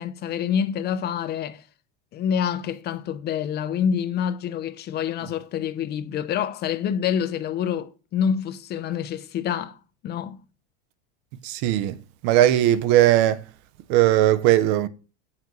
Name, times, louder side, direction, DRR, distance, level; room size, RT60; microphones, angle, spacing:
voice 1, 0.0-1.6 2.1-9.8 10.0-10.4, left 8 dB, 30° left, 0.4 m, -27 dB
voice 2, 11.4-12.0 12.2-13.4 13.9-14.9, right 13 dB, 55° right, 0.6 m, -18 dB
7.5 x 5.7 x 3.0 m
supercardioid pair, 120°, 32 cm